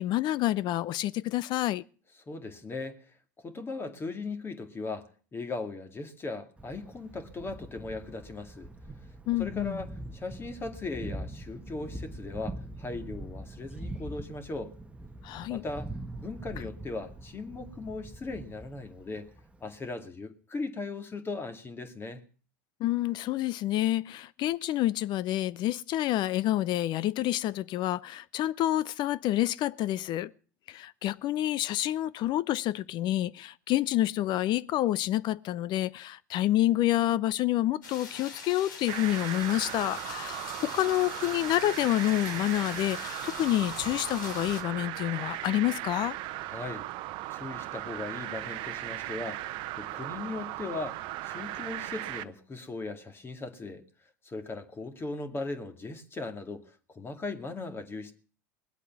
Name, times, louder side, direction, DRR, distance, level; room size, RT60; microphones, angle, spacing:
voice 1, 0.0-1.8 9.3-9.8 15.2-15.6 22.8-30.3 30.7-46.2, left 14 dB, 45° left, 0.6 m, -28 dB
voice 2, 2.3-3.1 3.4-8.7 9.4-14.7 15.5-15.9 16.2-19.3 19.6-22.2 46.4-46.9 47.3-53.8 54.2-58.1, left 3 dB, 25° left, 2.2 m, -38 dB
Thunder, 6.6-19.9, right 1 dB, 10° right, 1.3 m, -43 dB
sound 1, 37.8-44.6, left 4 dB, 80° left, 3.5 m, -43 dB
sound 2, 38.9-52.2, right 16 dB, 55° right, 0.9 m, -37 dB
20.0 x 8.3 x 7.2 m
hypercardioid pair, 90°, 10 cm